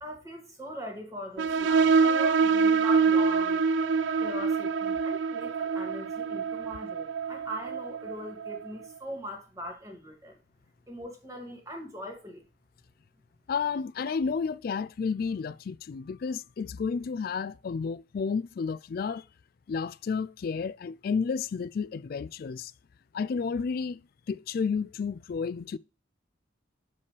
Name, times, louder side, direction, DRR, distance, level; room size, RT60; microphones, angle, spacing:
voice 1, 0.0-3.6 4.2-10.4 10.9-12.4, equal, 15° right, 1.7 m, -41 dB
sound 1, 1.4-8.7, right 5 dB, 65° right, 0.3 m, -25 dB
voice 2, 13.5-19.2 19.7-22.7 23.1-24.0 24.3-25.8, left 5 dB, 50° left, 0.3 m, -31 dB
6.9 x 5.4 x 3.2 m
head